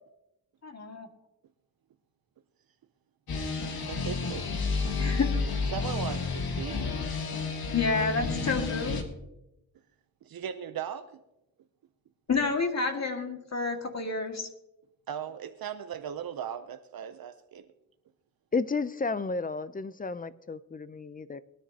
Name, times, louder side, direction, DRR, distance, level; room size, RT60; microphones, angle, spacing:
voice 1, 0.6-1.1 5.0-5.3 7.7-9.0 12.3-14.5, left 4 dB, 45° left, 2.0 m, -29 dB
sound 1, 3.3-9.0, left 4 dB, 80° left, 1.6 m, -31 dB
voice 2, 3.6-4.5 5.7-6.9 10.2-11.2 15.1-17.7, right 9 dB, 70° right, 0.7 m, -38 dB
voice 3, 18.5-21.4, left 4 dB, 25° left, 0.5 m, -32 dB
21.0 x 10.0 x 2.8 m
wide cardioid pair, 105°, 37 cm